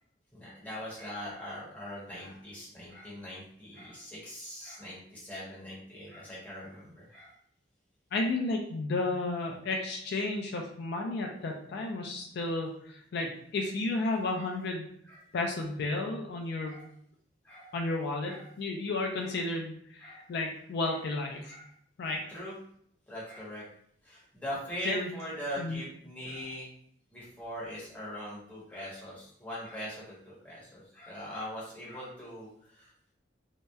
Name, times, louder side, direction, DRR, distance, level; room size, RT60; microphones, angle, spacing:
voice 1, 0.3-7.3 14.0-14.5 15.1-15.2 16.6-16.9 17.4-17.7 18.3-18.5 19.2-19.3 20.0-20.2 20.9-21.0 21.4-21.7 22.0-22.6 23.1-23.6 24.0-26.7 27.1-32.9, equal, 10° left, -7 dB, 0.9 m, -41 dB
voice 2, 8.1-14.9 15.3-16.8 17.7-21.5 22.0-22.2 24.9-25.1 25.6-25.8, left 2 dB, 60° left, 1 dB, 0.3 m, -32 dB
2.7 x 2.0 x 2.2 m, 0.67 s
head